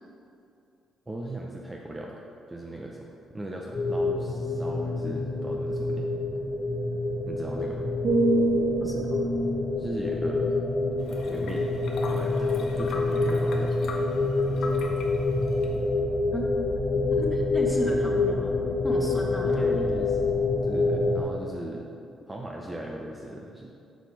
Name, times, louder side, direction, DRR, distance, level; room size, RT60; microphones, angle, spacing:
voice 1, 1.1-2.2 2.5-6.1 7.3-7.8 9.8-10.5 11.2-11.7 12.1-13.9 19.4-20.2 20.6-21.9 22.3-23.7, right 1 dB, 20° right, -1 dB, 0.6 m, -37 dB
sound 1, 3.7-21.2, left 3 dB, 35° left, 0.8 m, -27 dB
sound 2, 8.0-11.9 12.4-12.7, right 2 dB, 55° right, 1.5 m, -29 dB
voice 2, 8.8-9.2 16.3-16.4 17.1-18.5 18.8-19.9, equal, 10° left, -1 dB, 1.3 m, -34 dB
sound 3, 11.0-16.0, left 3 dB, 65° left, 1.0 m, -40 dB
7.7 x 5.1 x 4.6 m, 2.6 s
cardioid pair, 90°, 0 cm